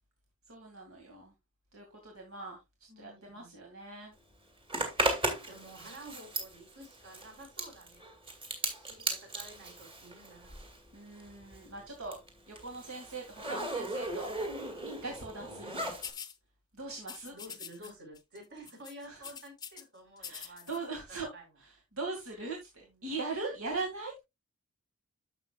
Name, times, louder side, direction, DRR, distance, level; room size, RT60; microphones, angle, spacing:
voice 1, 0.5-1.3 1.7-2.6 3.0-4.1 10.9-12.2 12.5-14.3 15.0-15.7 16.7-17.3 17.8-17.9 19.1-19.2 20.2-21.3 21.6-24.2, right 3 dB, 70° right, 2.2 m, -40 dB
voice 2, 2.9-3.5 5.4-8.1 8.8-10.5 15.4-16.0 17.2-20.8 21.1-21.5 22.8-23.1, right 1 dB, 55° right, 4.7 m, -51 dB
Zipper (clothing), 4.7-10.9 11.1-16.1, right 2 dB, 25° right, 2.4 m, -36 dB
sound 1, 16.0-16.4 17.0-17.9 18.2-18.4 18.7-19.8 20.2-20.8, left 7 dB, 20° left, 0.7 m, -44 dB
11.5 x 7.0 x 2.4 m
head